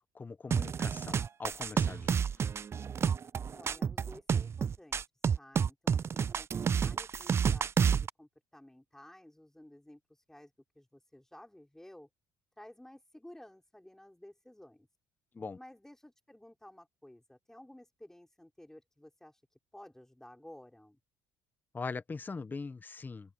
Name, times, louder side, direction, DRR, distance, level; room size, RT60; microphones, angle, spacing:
voice 1, 0.1-2.3 15.3-15.6 21.7-23.3, left 4 dB, 25° left, 0.9 m, -41 dB
sound 1, 0.5-8.1, right 7 dB, 35° right, 0.4 m, -30 dB
voice 2, 3.5-5.0 5.3-12.1 12.6-14.9 15.5-19.4 19.7-21.0, left 1 dB, 5° left, 4.8 m, -54 dB
open air
cardioid pair, 90°, 8 cm